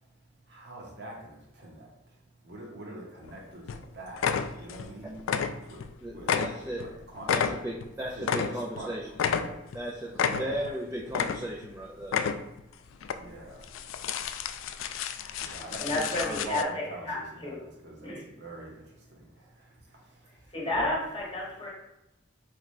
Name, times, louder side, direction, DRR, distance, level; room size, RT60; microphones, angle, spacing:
voice 1, 0.5-1.9 2.4-4.3 4.6-5.2 5.7-5.8 6.1-6.3 6.8-7.5 8.1-8.5 8.7-8.9 9.3-9.6 10.2-10.7 13.1-13.7 15.4-20.5, right 2 dB, 60° right, -2 dB, 1.0 m, -43 dB
sound 1, 3.2-3.4 3.7-3.8 4.2-4.9 5.2-5.9 6.2-8.8 9.2-9.8 10.1-10.7 11.1-11.7 12.0-12.6 13.0-13.2 13.6-16.6, left 7 dB, 85° left, 0.3 m, -30 dB
voice 2, 6.0-6.8 7.3-9.1 9.7-12.1, right 1 dB, 15° right, -3 dB, 0.4 m, -36 dB
voice 3, 15.8-17.6 18.0-18.3 20.5-21.7, left 2 dB, 25° left, -3 dB, 1.0 m, -31 dB
3.7 x 3.3 x 3.1 m, 0.93 s
head